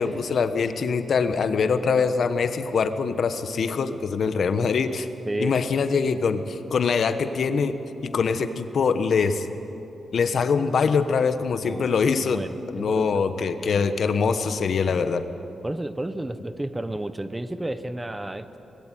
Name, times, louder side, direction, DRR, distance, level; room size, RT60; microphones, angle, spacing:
voice 1, 0.0-5.1 5.4-7.8 8.0-9.5 10.1-15.3, left 5 dB, 55° left, 9 dB, 1.3 m, -23 dB
voice 2, 5.2-5.6 11.6-11.9 12.2-14.0 15.6-18.6, right 1 dB, 10° right, 11 dB, 0.8 m, -32 dB
24.0 x 20.0 x 9.3 m, 2.9 s
wide cardioid pair, 165°, 0 cm